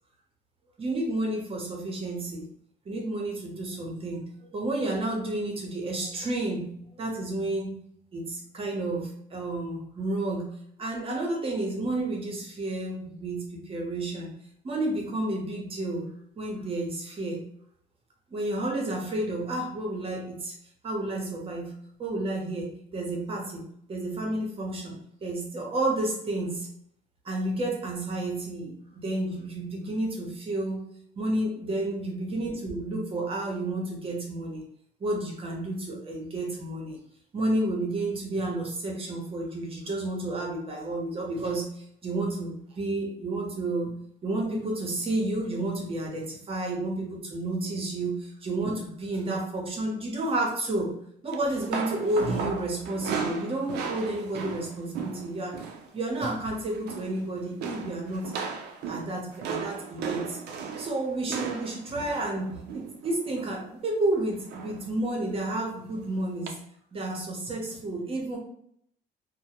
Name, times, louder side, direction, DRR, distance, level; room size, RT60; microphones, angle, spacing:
voice 1, 0.8-2.5 2.8-7.7 8.1-10.5 10.8-14.3 14.6-16.1 16.4-17.4 18.3-20.5 20.8-21.7 22.0-26.7 27.2-30.8 31.2-34.6 35.0-37.0 37.3-41.7 42.0-43.9 44.2-50.9 51.2-55.6 55.9-58.3 58.9-60.4 60.8-66.6 66.9-68.4, right 2 dB, 35° right, -1 dB, 0.8 m, -31 dB
sound 1, 51.3-55.9 56.1-56.5 56.7-57.2 57.6-63.6 64.5-64.9 65.2-65.4 66.5-66.6, right 5 dB, 75° right, 0.4 m, -36 dB
2.2 x 2.1 x 2.8 m, 0.69 s
cardioid pair, 110°, 17 cm